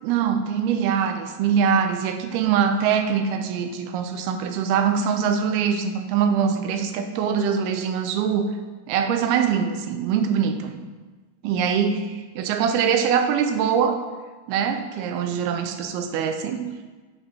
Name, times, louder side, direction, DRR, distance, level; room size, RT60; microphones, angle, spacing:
voice 1, 0.0-8.5 8.9-10.7 11.4-14.0 14.5-16.6, right 7 dB, 90° right, 6 dB, 2.5 m, -23 dB
8.0 x 5.3 x 3.7 m, 1.3 s
omnidirectional pair, 4.3 m